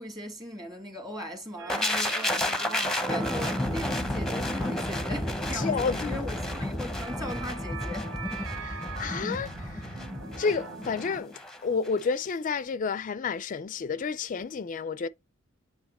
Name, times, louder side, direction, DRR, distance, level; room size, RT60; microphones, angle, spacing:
voice 1, 0.0-8.2, equal, 20° right, 1.7 m, -39 dB
sound 1, 1.6-11.2, right 5 dB, 90° right, 0.9 m, -42 dB
sound 2, 1.7-11.6 11.9-12.1, left 1 dB, 5° left, 0.8 m, -31 dB
voice 2, 5.5-6.2 8.6-10.0 10.4-15.1, left 5 dB, 40° left, 0.4 m, -31 dB
8.0 x 3.3 x 4.2 m
head